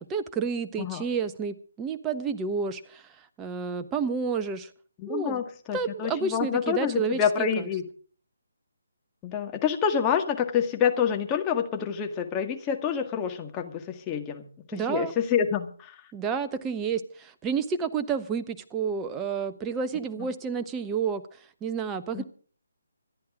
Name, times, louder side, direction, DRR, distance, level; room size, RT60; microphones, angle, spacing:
voice 1, 0.0-4.7 5.1-5.4 5.7-7.7 14.7-15.1 16.1-22.2, right 6 dB, 15° right, 9 dB, 1.1 m, -30 dB
voice 2, 5.0-7.9 9.2-14.4 14.7-16.0 22.1-22.2, left 8 dB, 20° left, 4 dB, 1.8 m, -27 dB
25.5 x 10.5 x 3.7 m, 0.43 s
figure-of-eight pair, 145°, 0 cm